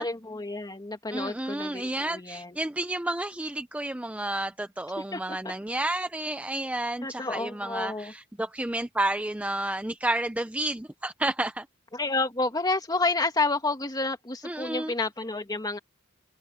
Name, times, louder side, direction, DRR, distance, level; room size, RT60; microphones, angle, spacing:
voice 1, 0.0-2.6 5.1-5.5 7.0-8.1 11.9-15.8, left 3 dB, 20° left, 2.0 m, -30 dB
voice 2, 1.1-11.7 14.4-14.9, right 1 dB, 5° right, 0.5 m, -31 dB
head